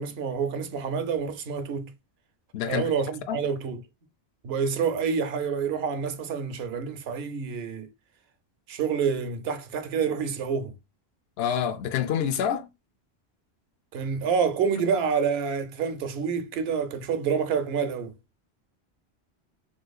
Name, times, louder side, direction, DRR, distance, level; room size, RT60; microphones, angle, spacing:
voice 1, 0.0-1.9 2.7-3.8 4.4-7.9 8.7-10.7 13.9-18.1, right 6 dB, 75° right, 0.8 m, -28 dB
voice 2, 2.5-2.9 3.3-3.4 11.4-12.7, left 9 dB, 75° left, 0.8 m, -27 dB
3.5 x 3.1 x 2.2 m
omnidirectional pair, 1.1 m